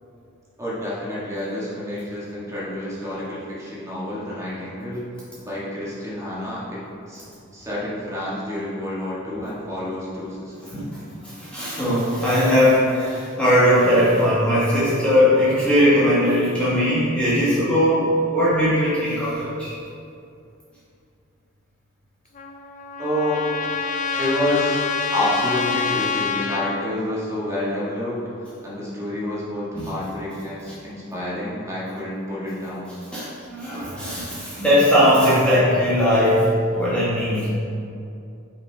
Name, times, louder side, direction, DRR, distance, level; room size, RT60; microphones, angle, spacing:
voice 1, 0.6-5.1 5.4-6.8 7.1-7.2 7.5-10.5 14.0-14.1 23.0-23.4 24.2-24.8 25.1-32.9, left 1 dB, 15° right, -8 dB, 1.7 m, -28 dB
voice 2, 11.4-19.7 29.7-29.8 33.1-37.5, equal, 5° left, -10 dB, 1.5 m, -19 dB
Trumpet, 22.3-26.9, left 5 dB, 40° left, 0.4 m, -26 dB
5.9 x 5.5 x 4.6 m, 2.6 s
head